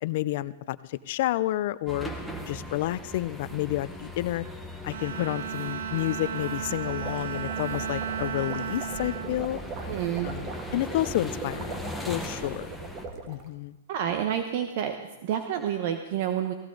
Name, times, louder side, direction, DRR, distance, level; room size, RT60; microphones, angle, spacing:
voice 1, 0.0-2.1 2.5-4.4 4.8-9.6 10.2-11.8 12.1-12.7 13.3-13.8, left 15 dB, 50° left, 16 dB, 0.6 m, -30 dB
sound 1, 1.9-13.1, equal, ahead, 1.5 m, -39 dB
Bowed string instrument, 4.9-10.4, right 8 dB, 70° right, 0.6 m, -35 dB
sound 2, 6.6-13.5, right 4 dB, 35° right, 2.0 m, -41 dB
voice 2, 9.9-10.4 13.9-15.0 15.2-16.5, right 9 dB, 50° right, 6 dB, 1.1 m, -29 dB
17.0 x 16.0 x 4.0 m, 1.1 s
hypercardioid pair, 145°, 0 cm